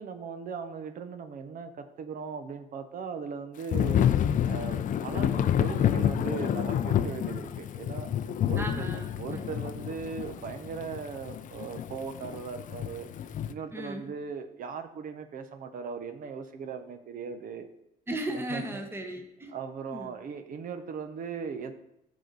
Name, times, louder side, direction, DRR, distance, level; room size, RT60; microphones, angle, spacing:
voice 1, 0.0-4.1 4.5-8.1 8.5-8.9 9.2-13.1 13.5-17.7 18.5-18.8 19.5-21.7, right 6 dB, 55° right, 8 dB, 1.0 m, -38 dB
Thunder / Rain, 3.7-13.5, left 10 dB, 50° left, 0.5 m, -29 dB
voice 2, 8.6-9.5 13.7-14.1 18.1-19.5 19.9-20.1, right 1 dB, 15° right, 4 dB, 1.2 m, -36 dB
13.5 x 5.1 x 4.1 m, 0.82 s
cardioid pair, 110°, 17 cm